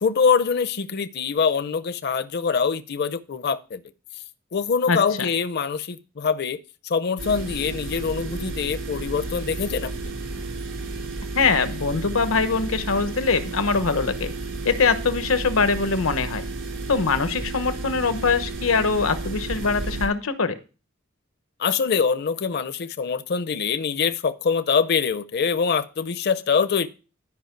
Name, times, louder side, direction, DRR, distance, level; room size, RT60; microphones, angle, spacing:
voice 1, 0.0-3.8 4.5-6.6 6.8-9.9 21.6-26.9, left 6 dB, 50° left, 13 dB, 0.5 m, -24 dB
voice 2, 4.9-5.3 11.3-14.3 14.6-16.4 16.9-20.6, left 4 dB, 90° left, 11 dB, 1.0 m, -23 dB
sound 1, 7.2-20.1, right 3 dB, 75° right, 3.5 m, -32 dB
12.0 x 5.3 x 4.5 m, 0.33 s
head